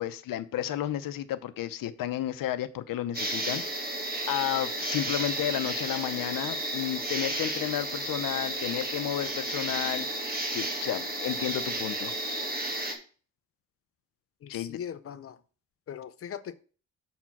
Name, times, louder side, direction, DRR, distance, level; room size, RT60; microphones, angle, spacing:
voice 1, 0.0-4.0 4.3-12.1 14.5-14.8, left 12 dB, 85° left, 11 dB, 0.8 m, -32 dB
sound 1, 3.1-12.9, right 1 dB, 30° right, 1.5 m, -32 dB
voice 2, 14.4-15.4 15.9-16.6, left 8 dB, 45° left, 14 dB, 0.5 m, -40 dB
6.9 x 4.4 x 6.0 m, 0.40 s
cardioid pair, 155°, 33 cm